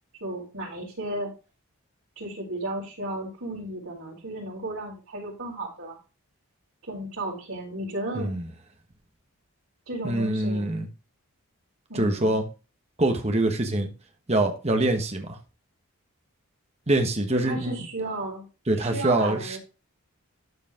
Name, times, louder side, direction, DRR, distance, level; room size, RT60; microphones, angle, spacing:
voice 1, 0.2-1.3 2.1-6.0 6.9-8.3 9.9-10.7 11.9-12.4 17.3-18.4 18.7-19.6, right 1 dB, 60° right, 4.8 m, -34 dB
voice 2, 10.0-10.9 11.9-12.5 13.0-13.9 14.3-15.4 16.9-17.9 18.7-19.6, right 1 dB, 30° right, 1.3 m, -24 dB
12.5 x 5.0 x 3.7 m
head